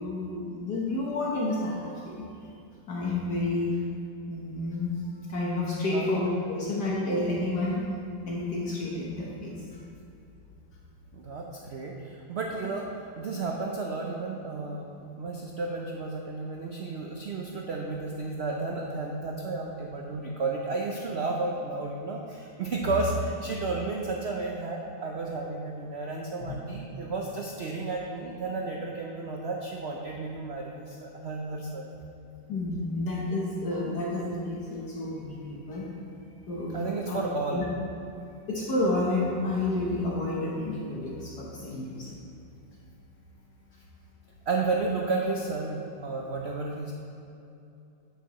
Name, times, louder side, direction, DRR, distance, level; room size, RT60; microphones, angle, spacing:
voice 1, 0.0-2.3 2.9-3.7 4.3-4.9 5.3-7.8 8.3-9.5 22.8-22.9 26.5-26.6 32.5-35.8 36.5-37.2 37.5-37.6 38.5-42.2, left 2 dB, 60° left, -4 dB, 1.6 m, -30 dB
voice 2, 11.1-31.9 36.7-37.7 44.5-46.9, right 3 dB, 85° right, -1 dB, 0.5 m, -32 dB
9.2 x 9.2 x 3.0 m, 2.8 s
omnidirectional pair, 2.0 m